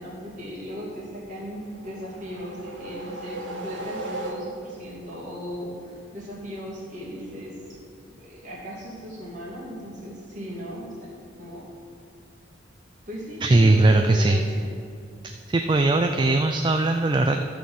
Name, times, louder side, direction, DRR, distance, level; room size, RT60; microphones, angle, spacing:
voice 1, 0.0-7.8 8.2-11.7 13.1-14.7, equal, 40° right, -6 dB, 2.6 m, -37 dB
sound 1, 1.8-4.9, right 2 dB, 70° right, 1.2 m, -36 dB
voice 2, 13.4-14.4 15.5-17.4, right 2 dB, 25° right, 5 dB, 0.3 m, -19 dB
12.5 x 4.3 x 7.6 m, 2.2 s
head